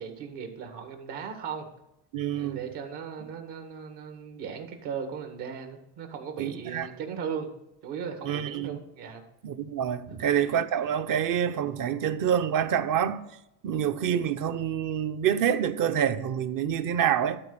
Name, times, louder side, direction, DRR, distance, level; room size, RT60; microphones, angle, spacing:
voice 1, 0.0-1.7 2.3-7.5 7.8-9.2 10.1-10.3, right 7 dB, 70° right, 2.0 m, -37 dB
voice 2, 2.1-2.6 6.4-6.9 8.2-8.8 9.4-13.2 13.6-17.4, right 9 dB, 50° right, 0.8 m, -27 dB
12.0 x 4.4 x 6.7 m
supercardioid pair, 110°, 42 cm